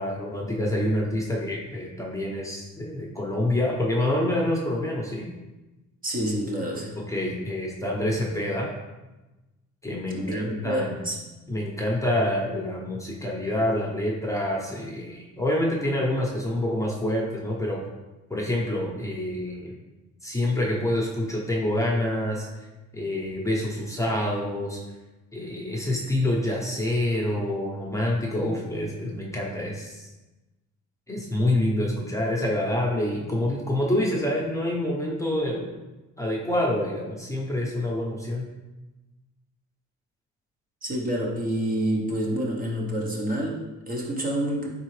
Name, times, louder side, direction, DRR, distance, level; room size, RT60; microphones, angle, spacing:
voice 1, 0.0-5.2 7.1-8.7 9.8-11.0 11.5-17.8 18.3-19.7 20.2-22.5 22.9-24.8 25.3-30.1 31.1-35.7 36.2-38.5, left 1 dB, 10° left, -3 dB, 0.8 m, -27 dB
voice 2, 6.0-7.0 10.1-11.2 40.8-44.7, right 1 dB, 30° right, -2 dB, 0.9 m, -28 dB
4.0 x 3.7 x 3.2 m, 1.1 s
cardioid pair, 90°, 30 cm